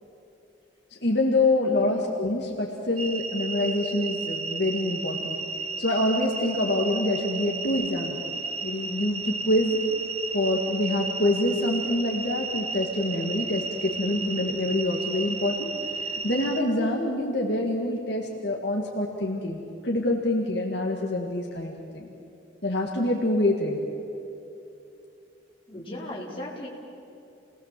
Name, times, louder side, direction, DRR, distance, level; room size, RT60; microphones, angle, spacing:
voice 1, 1.0-5.4 5.8-8.2 8.6-9.8 10.3-15.7 16.0-22.1 22.6-23.8, left 1 dB, 60° left, -1 dB, 2.1 m, -26 dB
sound 1, 3.0-16.6, right 4 dB, 35° right, 1.1 m, -33 dB
voice 2, 25.7-26.7, left 1 dB, 30° left, -5 dB, 4.7 m, -37 dB
29.0 x 19.5 x 7.7 m, 2.7 s
head